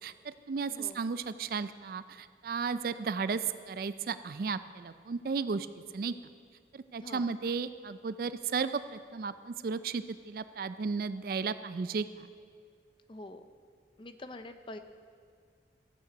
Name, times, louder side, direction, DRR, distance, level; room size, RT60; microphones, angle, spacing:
voice 1, 0.0-5.7 5.9-6.1 6.7-12.3, right 5 dB, 55° right, 13 dB, 0.4 m, -34 dB
voice 2, 0.7-1.0 7.0-7.2 13.1-13.4 14.0-14.8, left 2 dB, 30° left, 8 dB, 0.5 m, -45 dB
14.0 x 8.1 x 5.1 m, 2.1 s
head